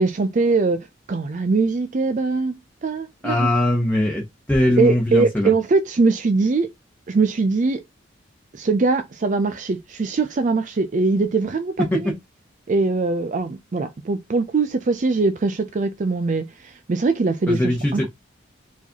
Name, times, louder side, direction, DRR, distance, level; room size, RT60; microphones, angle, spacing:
voice 1, 0.0-3.5 4.8-6.7 7.1-7.8 8.5-12.1 12.7-18.1, right 3 dB, 40° right, 0.4 m, -22 dB
voice 2, 3.2-5.5 11.9-12.1 17.5-18.1, left 1 dB, 10° left, 0.9 m, -21 dB
4.7 x 4.0 x 2.8 m
head